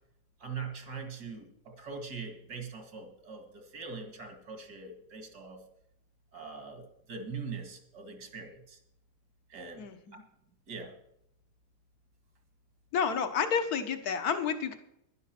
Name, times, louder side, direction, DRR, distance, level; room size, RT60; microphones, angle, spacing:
voice 1, 0.4-5.6 6.3-8.8 9.5-9.8 10.1-10.2 10.7-10.9, right 5 dB, 75° right, 6 dB, 2.6 m, -42 dB
voice 2, 9.8-10.2 12.9-14.8, left 6 dB, 70° left, 9 dB, 1.7 m, -30 dB
11.0 x 11.0 x 6.0 m, 0.77 s
omnidirectional pair, 1.7 m